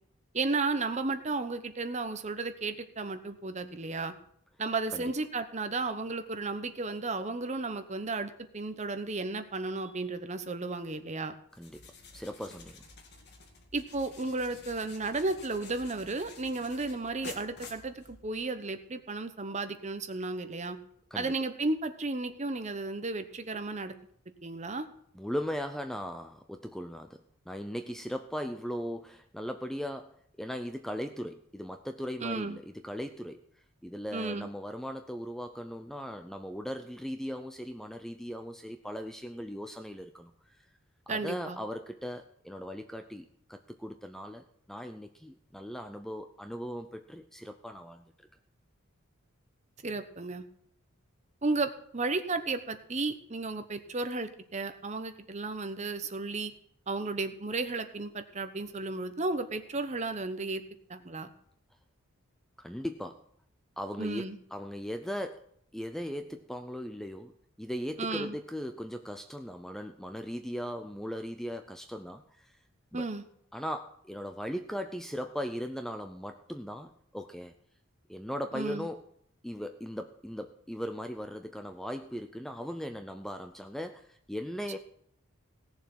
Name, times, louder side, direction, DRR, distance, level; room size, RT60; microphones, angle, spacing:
voice 1, 0.3-4.1 4.6-11.3 13.7-20.8 21.1-23.9 24.4-24.9 32.2-32.6 34.1-34.5 41.1-41.6 49.8-50.4 51.4-56.5 56.9-60.6 60.9-61.3 64.0-64.4 68.0-68.4 72.9-73.2 78.5-78.9, right 3 dB, 35° right, 9 dB, 1.0 m, -33 dB
sound 1, 11.5-18.5, left 3 dB, 50° left, 2.0 m, -50 dB
voice 2, 11.6-12.8 21.1-21.3 25.1-27.2 27.5-33.4 33.8-40.3 40.6-40.7 41.1-48.3 62.6-63.2 63.8-65.4 65.7-67.3 67.6-72.6 72.9-73.1 73.5-77.5 78.1-79.0 79.4-84.8, equal, ahead, 7 dB, 0.5 m, -38 dB
17.5 x 7.1 x 6.1 m, 0.69 s
head